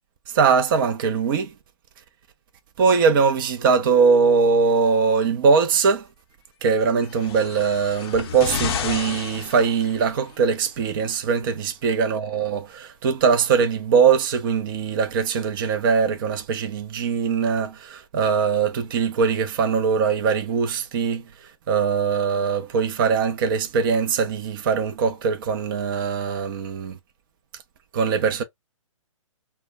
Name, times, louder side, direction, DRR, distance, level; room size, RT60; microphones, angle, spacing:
voice 1, 0.3-1.5 2.8-6.0 6.6-21.2 21.7-27.0 27.9-28.4, right 5 dB, 40° right, 0.5 m, -21 dB
sound 1, 7.0-10.3 11.3-11.4, left 7 dB, 50° left, 0.5 m, -31 dB
2.2 x 2.0 x 3.3 m
hypercardioid pair, 145°, 17 cm